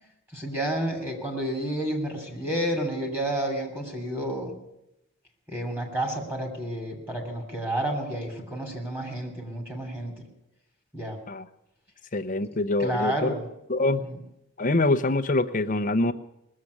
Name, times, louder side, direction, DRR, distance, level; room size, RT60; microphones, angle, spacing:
voice 1, 0.3-4.5 5.5-10.3 10.9-11.2 12.8-13.4 14.0-14.2, right 1 dB, 10° right, 3 dB, 3.1 m, -30 dB
voice 2, 12.1-13.3 13.7-14.0 14.6-16.1, left 2 dB, 35° left, 7 dB, 0.8 m, -24 dB
19.0 x 7.6 x 9.7 m, 0.84 s
head